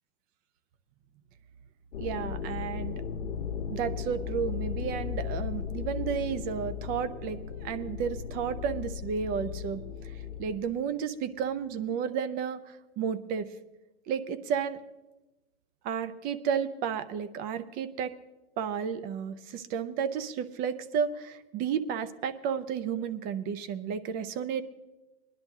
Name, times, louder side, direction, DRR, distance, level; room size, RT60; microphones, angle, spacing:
sound 1, 1.9-10.6, left 7 dB, 90° left, 1.2 m, -36 dB
voice 1, 2.0-3.3 3.7-10.1 10.4-13.5 14.1-14.8 15.8-18.1 18.6-24.6, right 7 dB, 25° right, 14 dB, 0.5 m, -32 dB
19.5 x 11.0 x 3.6 m, 1.0 s
hypercardioid pair, 135°, 34 cm